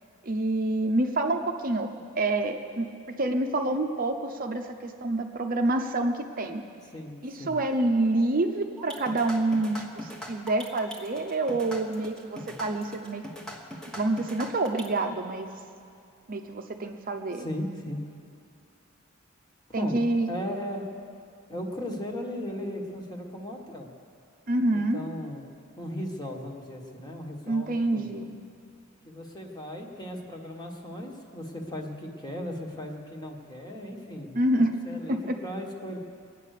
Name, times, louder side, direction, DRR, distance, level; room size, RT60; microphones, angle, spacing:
voice 1, 0.2-6.6 7.2-13.2 14.0-15.5 16.3-17.5 19.7-20.3 24.5-25.0 27.5-28.3 34.3-34.7 35.1-35.4, right 2 dB, 40° right, 4 dB, 0.7 m, -27 dB
voice 2, 6.8-7.6 12.3-12.6 17.3-18.0 19.7-20.9 21.5-23.9 24.7-28.3 29.0-36.0, equal, 20° left, 1 dB, 1.6 m, -37 dB
sound 1, 8.8-15.0, equal, 5° left, 1.2 m, -41 dB
23.0 x 9.3 x 6.6 m, 2.4 s
head